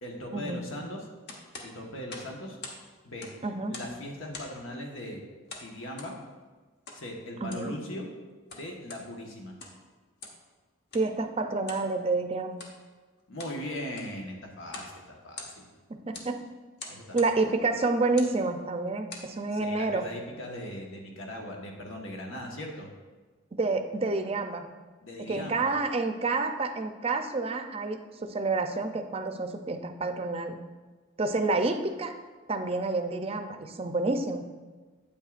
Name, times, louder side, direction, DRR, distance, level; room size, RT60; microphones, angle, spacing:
voice 1, 0.0-1.0 1.6-2.6 3.0-3.3 3.7-5.2 5.6-6.2 6.9-8.1 8.5-9.5 13.3-15.7 16.9-17.2 19.5-22.9 25.0-25.7, left 1 dB, 90° left, 0 dB, 1.4 m, -39 dB
sound 1, 1.3-2.8 3.1-4.0 4.3-4.7 5.5-6.1 6.9-7.0 7.4-7.7 8.3-9.0 9.5-9.8 10.2-10.4 10.9-11.1 11.6-11.9 12.5-12.8 13.2-13.6 13.9-14.2 14.7-14.9 15.2-15.8 16.1-16.3 16.8-17.3 18.0-18.4 18.9-19.3, left 3 dB, 55° left, 1.1 m, -44 dB
voice 2, 3.4-3.7 7.4-7.7 10.9-12.6 16.1-16.4 17.1-20.1 23.5-24.7 25.3-30.6 31.2-32.1 32.5-34.4, right 3 dB, 30° right, 7 dB, 0.5 m, -29 dB
9.0 x 8.3 x 2.5 m, 1.3 s
head